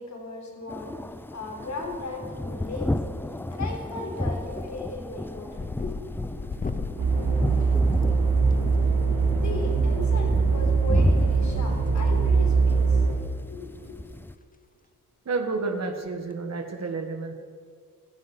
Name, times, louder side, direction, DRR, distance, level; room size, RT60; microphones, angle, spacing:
voice 1, 0.0-3.0 3.5-6.5 9.3-13.1 13.5-14.0, left 3 dB, 50° left, 1 dB, 4.0 m, -37 dB
sound 1, 0.7-14.3, left 1 dB, 5° left, 0.4 m, -33 dB
sound 2, 1.8-2.3 2.6-3.2 3.5-3.8 4.1-8.5 9.9-10.0 11.3-12.1 12.4-12.6 13.1-13.2 13.5-13.6 13.9-14.1 14.4-14.5 16.0-16.3, left 4 dB, 25° left, 0.9 m, -38 dB
sound 3, 7.0-13.1, right 4 dB, 75° right, 3.6 m, -22 dB
voice 2, 15.3-17.3, right 3 dB, 45° right, 5 dB, 1.8 m, -30 dB
16.0 x 14.5 x 5.6 m, 2.1 s
wide cardioid pair, 145°, 35 cm